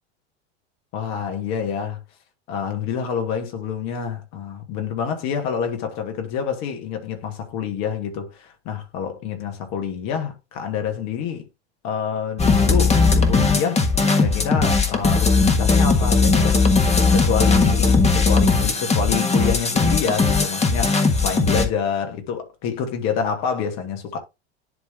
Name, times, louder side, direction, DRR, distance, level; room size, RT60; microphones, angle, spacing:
voice 1, 0.9-2.0 2.5-11.4 11.8-13.8 14.2-16.6 17.1-24.2, left 7 dB, 60° left, 2.5 m, -27 dB
sound 1, 12.4-21.6, left 4 dB, 20° left, 1.6 m, -18 dB
10.5 x 3.6 x 3.6 m
hypercardioid pair, 95°, 31 cm